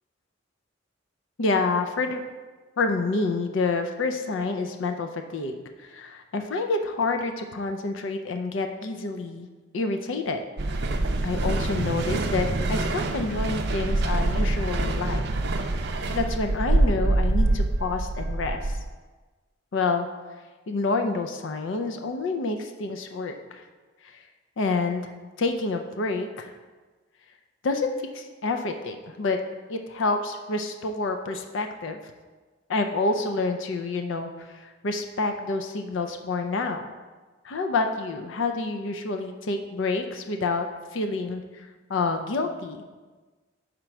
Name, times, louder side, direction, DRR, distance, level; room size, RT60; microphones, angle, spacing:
voice 1, 1.4-2.2 2.8-5.5 5.8-9.5 9.7-10.4 11.2-15.2 16.1-18.8 19.7-20.1 20.7-23.6 24.0-24.2 24.6-25.1 25.4-26.5 27.6-29.4 29.7-32.0 32.7-36.9 37.4-40.7 40.9-42.8, left 3 dB, 70° left, 5 dB, 0.5 m, -28 dB
sound 1, 10.6-18.9, right 2 dB, 55° right, 0.4 m, -25 dB
5.1 x 4.4 x 5.9 m, 1.3 s
head